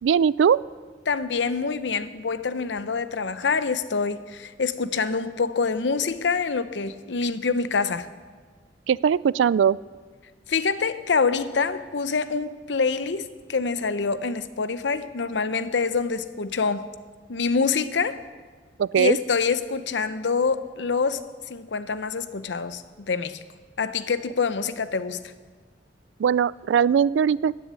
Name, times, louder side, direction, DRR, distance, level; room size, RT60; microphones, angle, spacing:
voice 1, 0.0-0.6 8.9-9.8 18.8-19.2 26.2-27.6, right 7 dB, 85° right, 22 dB, 0.3 m, -20 dB
voice 2, 1.1-8.1 10.5-16.9 17.3-18.2 18.9-23.4 23.8-25.3, left 5 dB, 75° left, 13 dB, 0.7 m, -26 dB
15.0 x 7.1 x 9.6 m, 1.5 s
head